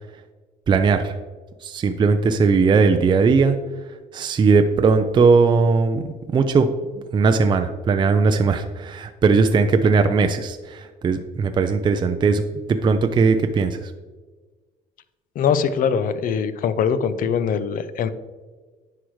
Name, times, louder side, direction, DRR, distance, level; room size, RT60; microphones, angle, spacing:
voice 1, 0.7-1.1 1.6-3.6 4.1-6.0 6.3-6.7 7.0-12.4 12.7-13.9, right 4 dB, 25° right, 7 dB, 0.4 m, -18 dB
voice 2, 15.4-18.1, left 7 dB, 55° left, 13 dB, 0.5 m, -22 dB
9.9 x 4.8 x 3.1 m, 1.4 s
cardioid pair, 110°, 17 cm